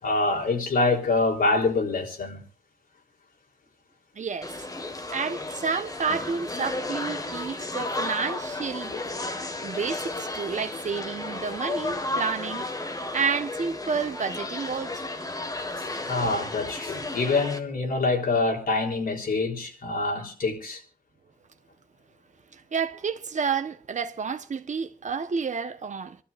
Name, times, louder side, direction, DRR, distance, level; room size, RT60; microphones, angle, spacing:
voice 1, 0.0-2.4 8.9-9.0 15.8-20.8, left 3 dB, 80° left, 3.8 m, -25 dB
voice 2, 4.2-4.5 5.1-9.0 9.6-12.6 13.1-15.1 22.5-26.2, right 5 dB, 55° right, 1.1 m, -30 dB
sound 1, 4.4-17.6, left 2 dB, 25° left, 1.7 m, -33 dB
27.5 x 13.0 x 2.6 m
wide cardioid pair, 165°, 15 cm